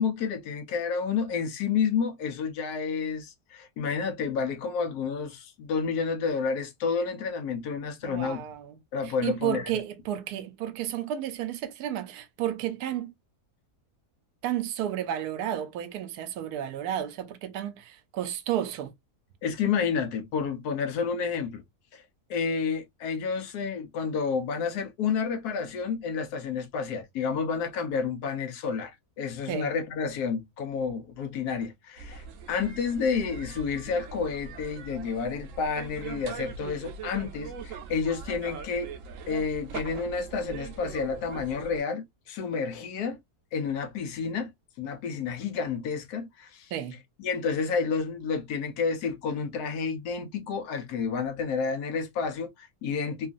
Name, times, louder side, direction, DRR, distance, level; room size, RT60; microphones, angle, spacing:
voice 1, 0.0-8.4 8.9-9.7 19.4-21.6 21.9-22.0 22.3-32.2 32.5-38.9 39.3-43.2 43.5-44.5 44.8-46.7 47.2-53.3, left 5 dB, 90° left, 1.2 m, -30 dB
voice 2, 8.0-8.8 9.0-13.1 14.4-18.9 29.5-29.7 46.7-47.0, right 11 dB, 85° right, 1.1 m, -32 dB
sound 1, 32.0-41.8, right 5 dB, 70° right, 0.9 m, -41 dB
3.0 x 2.3 x 2.3 m
omnidirectional pair, 1.6 m